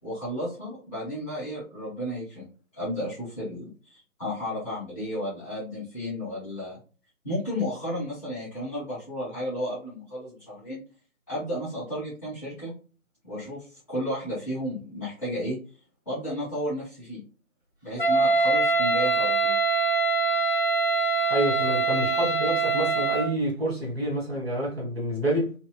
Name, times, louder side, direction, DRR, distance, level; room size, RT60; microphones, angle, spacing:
voice 1, 0.0-2.5 2.7-6.8 7.2-10.8 11.3-12.7 13.2-15.6 16.0-17.2 17.8-19.5, equal, 5° left, 1.6 m, -33 dB
Wind instrument woodwind instrument, 18.0-23.3, right 3 dB, 40° left, 0.4 m, -23 dB
voice 2, 21.3-25.5, right 1 dB, 45° right, 1.3 m, -28 dB
2.9 x 2.8 x 2.4 m
figure-of-eight pair, 160°, 44 cm